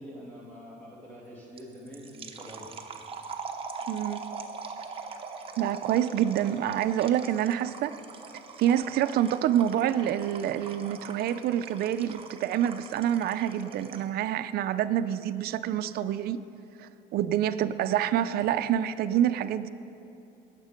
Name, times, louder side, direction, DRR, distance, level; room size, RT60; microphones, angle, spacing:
voice 1, 0.0-2.8, equal, 10° left, -6 dB, 2.7 m, -45 dB
sound 1, 1.6-14.2, right 5 dB, 35° right, 0.9 m, -42 dB
voice 2, 3.9-4.2 5.6-7.9 8.6-16.4 16.8-19.7, right 11 dB, 65° right, 11 dB, 0.5 m, -27 dB
18.5 x 7.5 x 5.2 m, 2.6 s
cardioid pair, 110°, 17 cm